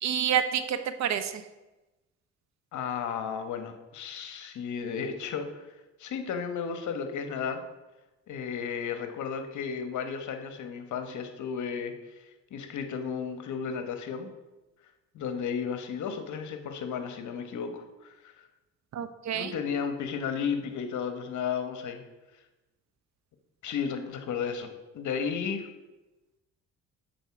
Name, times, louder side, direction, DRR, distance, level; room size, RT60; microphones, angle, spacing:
voice 1, 0.0-1.4 18.9-19.5, right 9 dB, 65° right, 10 dB, 0.7 m, -28 dB
voice 2, 2.7-5.5 6.0-7.6 8.3-11.9 12.5-14.3 15.1-18.5 19.3-22.0 23.6-24.7 24.9-25.6, left 6 dB, 75° left, 7 dB, 1.1 m, -33 dB
7.9 x 4.5 x 5.8 m, 1.1 s
cardioid pair, 90°, 30 cm